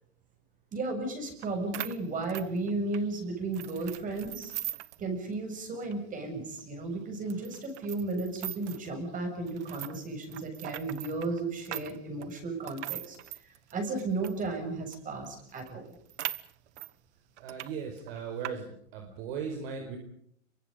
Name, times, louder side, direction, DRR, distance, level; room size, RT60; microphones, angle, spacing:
voice 1, 0.7-4.5 5.0-13.2 13.7-15.9, right 3 dB, 20° right, 5 dB, 7.4 m, -34 dB
sound 1, 1.4-1.5 1.7-3.1 3.5-5.0 5.3-5.4 5.8-5.9 6.5-6.6 7.3-8.9 9.5-14.4 14.9-15.0 15.2-15.3 15.6-16.9 17.4-17.7 18.0-18.5, right 14 dB, 70° right, 1.4 m, -40 dB
voice 2, 17.4-20.0, right 6 dB, 55° right, 4 dB, 5.0 m, -38 dB
27.5 x 24.0 x 5.2 m, 0.68 s
supercardioid pair, 145°, 36 cm